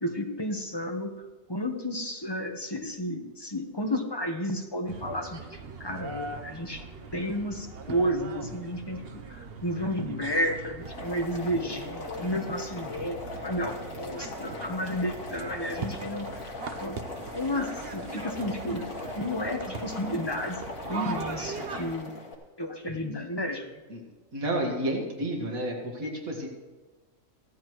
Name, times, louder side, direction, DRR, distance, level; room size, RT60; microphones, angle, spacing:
voice 1, 0.0-1.1 1.5-6.8 7.1-16.3 16.8-18.8 19.1-20.6 20.9-22.1 22.6-23.7, equal, 20° left, 3 dB, 1.1 m, -32 dB
sound 1, 4.9-21.9, right 4 dB, 50° right, 1.0 m, -41 dB
Boiling, 10.8-22.3, left 3 dB, 85° left, 2.4 m, -40 dB
voice 2, 24.3-26.5, right 1 dB, 85° right, 0 dB, 2.3 m, -31 dB
16.0 x 13.5 x 3.1 m, 1.2 s
omnidirectional pair, 1.4 m